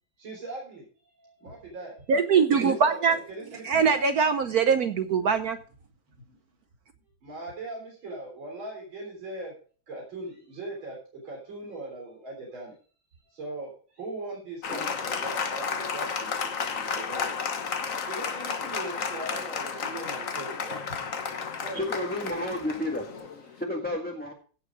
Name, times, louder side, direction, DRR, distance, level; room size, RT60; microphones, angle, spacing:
voice 1, 0.2-0.9 1.2-2.1 2.6-4.6 6.2-6.4 7.2-9.5 9.9-12.7 13.2-17.6 18.0-20.8 21.1-21.2 21.6-22.1, right 2 dB, 85° right, -2 dB, 4.4 m, -40 dB
voice 2, 2.1-3.2 3.6-5.6, right 6 dB, 60° right, 9 dB, 1.1 m, -22 dB
Applause, 14.6-23.6, left 6 dB, 45° left, 1.4 m, -32 dB
voice 3, 21.7-24.3, left 1 dB, 5° left, -1 dB, 1.5 m, -32 dB
16.0 x 6.4 x 4.9 m, 0.41 s
omnidirectional pair, 2.1 m